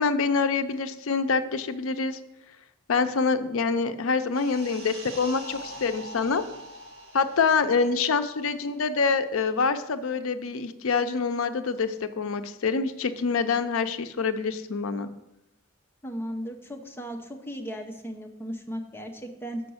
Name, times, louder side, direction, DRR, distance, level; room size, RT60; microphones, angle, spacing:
voice 1, 0.0-2.2 2.9-6.4 7.1-15.1, left 5 dB, 70° left, 10 dB, 0.5 m, -26 dB
sound 1, 4.3-9.4 9.7-9.9, right 1 dB, 55° right, 1.9 m, -44 dB
voice 2, 16.0-19.6, equal, 10° left, 2 dB, 0.7 m, -36 dB
6.9 x 5.2 x 6.2 m, 0.91 s
head